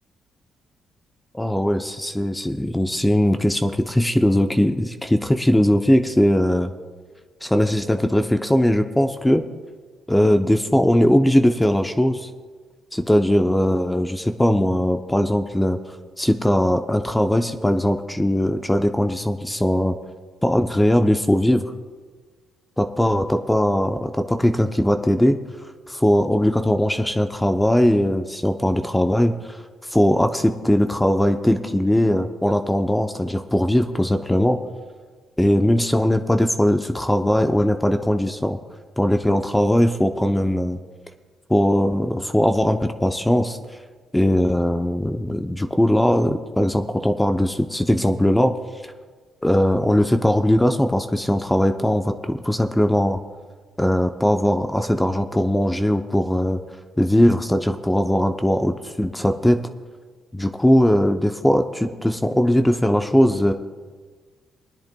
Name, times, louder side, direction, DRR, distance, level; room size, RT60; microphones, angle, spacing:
voice 1, 1.3-6.7 7.4-9.4 10.1-12.3 12.9-15.8 16.2-20.0 20.4-21.7 22.8-25.4 25.9-29.6 29.9-34.6 35.4-38.6 39.0-40.8 41.5-43.6 44.1-48.6 48.8-48.9 49.4-53.2 53.8-56.6 57.0-59.7 60.3-63.5, left 1 dB, 5° left, 6 dB, 0.6 m, -19 dB
23.0 x 10.5 x 2.3 m, 1.5 s
cardioid pair, 90°, 0 cm